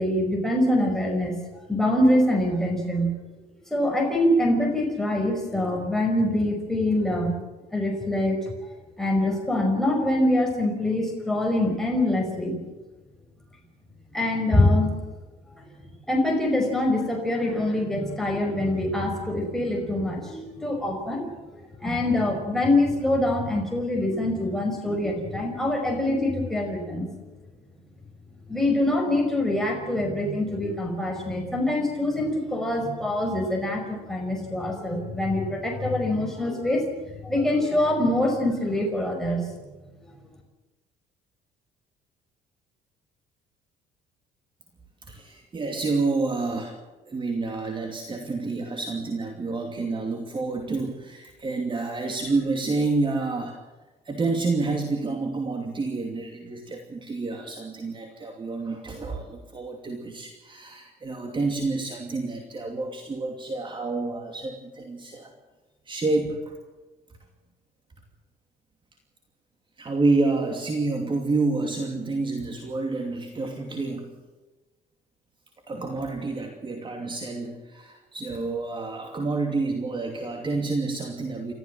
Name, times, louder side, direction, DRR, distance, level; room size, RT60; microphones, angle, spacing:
voice 1, 0.0-1.4 1.7-3.2 3.7-7.4 7.7-8.4 9.0-12.6 14.1-14.9 15.6-15.7 16.1-21.3 21.8-27.1 28.5-36.9 37.2-39.5, left 1 dB, ahead, 0 dB, 5.4 m, -24 dB
voice 2, 45.1-46.8 47.1-53.6 54.0-65.3 65.9-66.6 69.8-74.1 75.7-81.5, right 3 dB, 30° right, 3 dB, 2.7 m, -28 dB
29.5 x 14.0 x 7.6 m, 1.2 s
cardioid pair, 110°, 17 cm